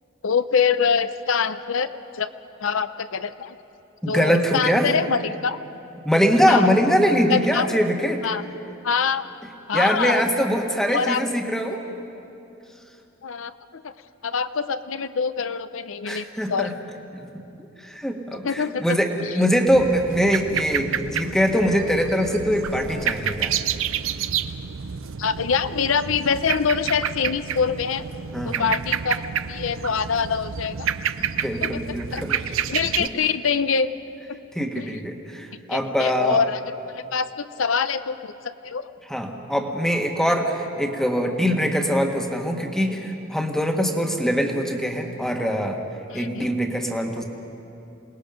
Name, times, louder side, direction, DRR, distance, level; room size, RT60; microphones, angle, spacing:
voice 1, 0.2-2.3 2.6-3.5 4.1-5.6 6.5-6.7 7.3-7.7 8.2-8.4 8.8-9.2 9.7-10.2 10.9-11.2 13.2-13.9 14.2-16.7 18.4-19.0 25.2-28.1 28.4-30.9 31.6-31.8 32.1-32.2 32.7-33.9 34.7-34.9 35.7-36.6 36.9-38.9 46.1-46.5, left 6 dB, 65° left, 12 dB, 0.6 m, -24 dB
voice 2, 4.0-4.9 6.0-8.3 9.7-11.8 16.0-16.7 17.1-17.2 17.6-23.5 28.3-28.7 31.2-32.4 33.0-33.1 34.5-36.4 39.1-45.8 46.1-47.2, equal, ahead, 2 dB, 1.4 m, -23 dB
sound 1, 19.7-33.1, right 8 dB, 70° right, 0.6 m, -29 dB
27.5 x 19.5 x 5.2 m, 2.8 s
head